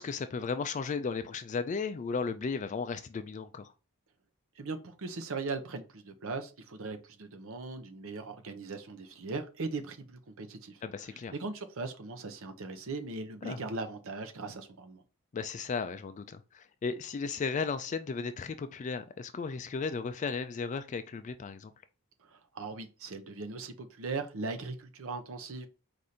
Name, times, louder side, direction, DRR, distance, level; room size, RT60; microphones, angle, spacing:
voice 1, 0.0-3.7 10.8-11.3 13.4-13.6 15.3-21.7, left 5 dB, 35° left, 0.3 m, -35 dB
voice 2, 4.6-15.0 22.2-25.7, right 3 dB, 65° right, 0.7 m, -39 dB
4.8 x 2.6 x 4.1 m
head